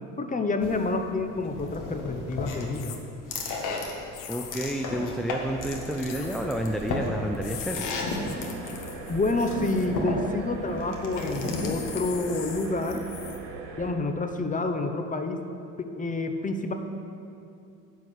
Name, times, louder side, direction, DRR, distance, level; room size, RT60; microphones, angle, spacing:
voice 1, 0.2-2.9 9.1-13.0 13.8-15.4 15.8-16.7, left 2 dB, 20° left, 6 dB, 0.9 m, -28 dB
sound 1, 0.6-12.0, left 3 dB, 55° left, 1.7 m, -34 dB
sound 2, 2.7-3.0 4.1-4.7 6.0-6.5 7.3-9.9 11.1-13.4, left 9 dB, 75° left, 1.1 m, -42 dB
voice 2, 4.3-8.0, right 1 dB, ahead, 3 dB, 0.4 m, -30 dB
sound 3, 5.3-13.9, right 3 dB, 80° right, 1.5 m, -40 dB
10.5 x 4.7 x 8.0 m, 2.6 s
supercardioid pair, 90°, 36 cm